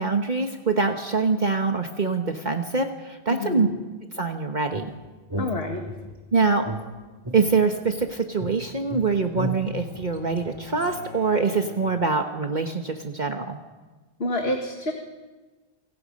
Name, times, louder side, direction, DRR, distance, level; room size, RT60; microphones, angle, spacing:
voice 1, 0.0-3.7 4.2-4.9 6.3-6.6 7.3-13.6, right 4 dB, 45° right, 4 dB, 1.5 m, -24 dB
voice 2, 3.3-3.8 5.4-5.8 14.2-14.9, left 1 dB, 70° left, 2 dB, 2.2 m, -28 dB
sound 1, 4.7-6.2 6.6-8.1 8.4-10.9, equal, 20° right, 2.5 m, -35 dB
Bowed string instrument, 8.4-12.3, left 1 dB, 30° left, 5.8 m, -45 dB
28.5 x 25.0 x 5.4 m, 1.3 s
omnidirectional pair, 1.1 m